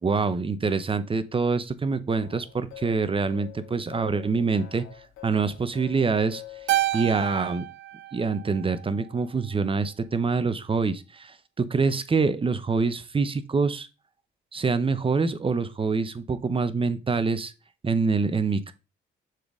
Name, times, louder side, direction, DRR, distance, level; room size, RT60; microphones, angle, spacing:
voice 1, 0.0-4.8 5.2-6.4 6.9-7.6 8.1-13.9 14.5-17.5 17.8-18.7, right 4 dB, 25° right, 0.9 m, -25 dB
sound 1, 2.1-7.1, left 12 dB, 90° left, 2.0 m, -46 dB
Keyboard (musical), 6.7-9.2, right 16 dB, 70° right, 0.5 m, -30 dB
6.5 x 4.2 x 4.9 m
cardioid pair, 90°, 20 cm